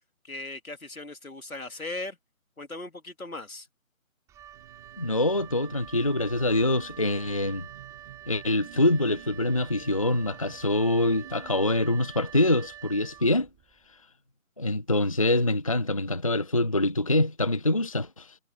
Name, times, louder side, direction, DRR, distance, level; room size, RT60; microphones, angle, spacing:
voice 1, 0.2-2.2 2.6-3.7, left 2 dB, 80° left, 3.2 m, -38 dB
Wind instrument woodwind instrument, 4.3-13.8, right 11 dB, 5° right, 5.1 m, -46 dB
sound 1, 4.5-12.0, right 11 dB, 25° right, 7.0 m, -52 dB
voice 2, 5.0-7.7 8.3-13.5 14.6-18.4, left 1 dB, 25° left, 0.6 m, -25 dB
figure-of-eight pair, 155°, 42 cm